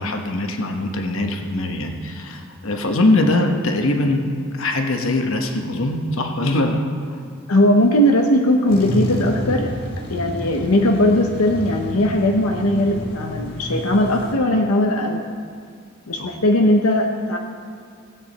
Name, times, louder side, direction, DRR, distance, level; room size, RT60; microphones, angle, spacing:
voice 1, 0.0-4.2 4.6-6.8 16.2-16.3, left 2 dB, 65° left, 4 dB, 1.1 m, -21 dB
voice 2, 7.5-9.7 10.1-15.2 16.1-17.4, left 1 dB, 90° left, 2 dB, 0.8 m, -18 dB
sound 1, 8.7-14.3, left 1 dB, 45° left, 1.7 m, -30 dB
16.5 x 8.6 x 4.1 m, 2.1 s
head